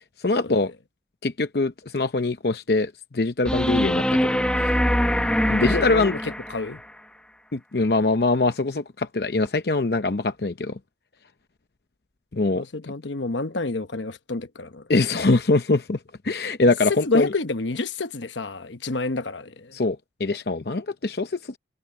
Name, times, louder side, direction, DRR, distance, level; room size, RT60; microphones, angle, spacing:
voice 1, 0.2-0.7 1.2-4.7 5.5-6.1 7.5-10.8 12.3-12.6 14.9-16.0 16.2-17.3 19.7-21.6, left 3 dB, 55° left, 0.7 m, -23 dB
sound 1, 3.5-6.8 9.5-9.6, equal, 5° left, 0.9 m, -23 dB
voice 2, 5.6-6.8 12.5-14.8 16.9-19.7, left 3 dB, 80° left, 1.1 m, -29 dB
head